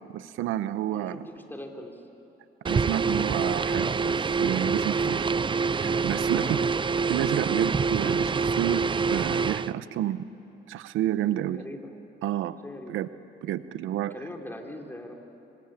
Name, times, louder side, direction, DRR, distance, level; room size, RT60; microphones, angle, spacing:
voice 1, 0.1-1.2 2.7-5.3 5.8-6.6 7.1-8.8 9.1-10.2 10.7-11.6 12.2-12.6 12.9-13.1 13.4-14.1, right 12 dB, 90° right, 13 dB, 0.9 m, -29 dB
voice 2, 0.9-2.0 6.2-6.7 11.5-11.9 12.6-12.9 14.1-15.1, left 1 dB, 10° left, 3 dB, 3.7 m, -41 dB
sound 1, 2.7-9.7, right 5 dB, 25° right, 0.5 m, -26 dB
26.0 x 25.0 x 9.0 m, 3.0 s
cardioid pair, 90°, 20 cm